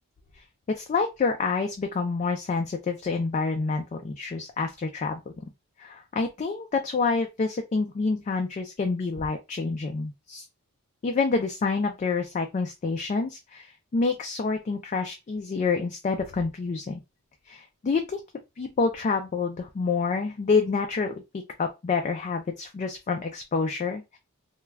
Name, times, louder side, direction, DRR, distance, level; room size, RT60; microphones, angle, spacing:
voice 1, 0.7-5.3 5.8-10.4 11.0-17.0 17.5-18.2 18.6-24.2, left 4 dB, 30° left, 4 dB, 0.3 m, -28 dB
2.3 x 2.2 x 3.2 m, 0.24 s
head